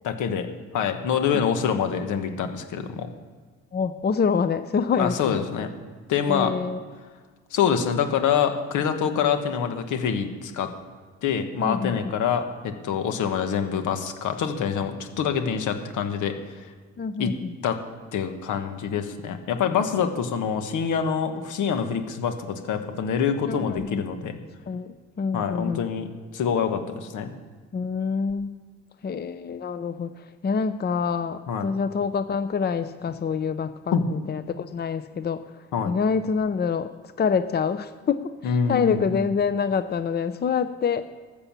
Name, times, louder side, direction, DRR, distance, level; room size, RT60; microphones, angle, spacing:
voice 1, 0.0-3.1 5.0-5.7 6.1-6.5 7.5-10.7 11.2-16.3 17.2-17.3 17.6-17.8 18.1-24.4 25.3-26.1 26.3-27.3 31.5-31.7 33.9-34.0 35.7-35.9 38.4-39.0, left 7 dB, 80° left, 7 dB, 1.4 m, -25 dB
voice 2, 3.7-5.5 6.2-6.9 11.6-12.1 17.0-17.5 23.5-24.0 24.7-24.9 25.2-25.9 27.7-28.5 29.0-35.4 35.8-36.9 37.2-41.0, left 6 dB, 35° left, 11 dB, 0.6 m, -26 dB
14.0 x 6.9 x 7.4 m, 1.5 s
cardioid pair, 90°, 30 cm